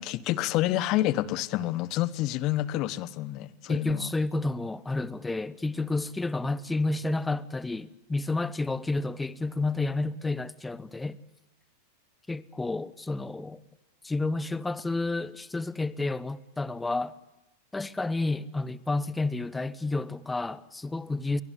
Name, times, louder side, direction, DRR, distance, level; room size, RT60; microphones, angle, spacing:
voice 1, 0.0-4.1, left 15 dB, 40° left, 1.1 m, -28 dB
voice 2, 3.7-11.2 12.3-13.6 14.0-17.1 17.7-21.4, left 2 dB, 10° left, 1.0 m, -30 dB
29.0 x 23.5 x 8.3 m
figure-of-eight pair, 90°, 0 cm